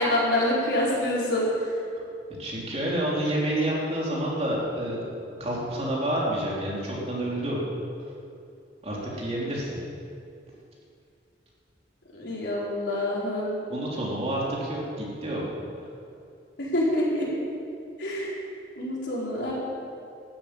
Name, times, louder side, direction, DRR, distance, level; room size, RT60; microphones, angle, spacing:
voice 1, 0.0-1.5 12.1-13.5 16.6-17.3 18.0-18.3 18.8-19.5, left 1 dB, 75° left, -5 dB, 4.5 m, -26 dB
voice 2, 2.4-5.1 5.4-7.6 8.8-9.7 13.7-14.8 15.2-15.5, right 1 dB, 35° right, -5 dB, 3.6 m, -28 dB
13.0 x 9.4 x 8.8 m, 2.5 s
head